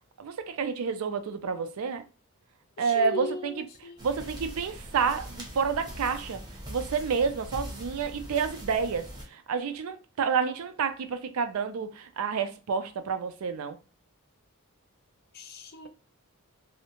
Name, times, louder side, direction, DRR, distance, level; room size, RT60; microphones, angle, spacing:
voice 1, 0.2-2.0 2.8-3.6 4.0-6.4 6.7-13.8, right 6 dB, 75° right, 0.4 m, -29 dB
voice 2, 2.8-4.1 15.3-15.9, left 3 dB, 45° left, 0.5 m, -37 dB
sound 1, 4.0-9.2, equal, 20° right, 0.6 m, -42 dB
2.6 x 2.0 x 2.8 m
head